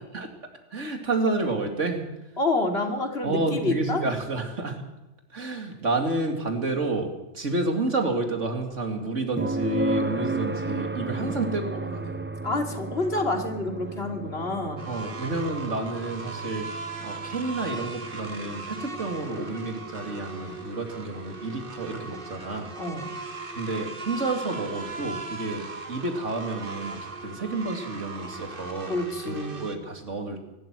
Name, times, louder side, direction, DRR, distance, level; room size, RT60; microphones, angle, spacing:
voice 1, 0.7-2.0 3.2-4.8 5.3-7.1 7.3-12.2 14.8-22.7 23.6-28.9 29.2-30.4, right 2 dB, 80° right, 4 dB, 3.1 m, -30 dB
voice 2, 2.4-4.0 11.1-11.4 12.4-14.9 22.8-23.0 28.8-29.7, left 2 dB, 55° left, 4 dB, 3.0 m, -28 dB
sound 1, 9.4-23.2 25.5-25.6, right 3 dB, 15° right, 0.5 m, -35 dB
sound 2, 14.8-29.8, right 3 dB, 45° right, 1.9 m, -38 dB
23.5 x 12.5 x 9.2 m, 0.96 s
omnidirectional pair, 1.2 m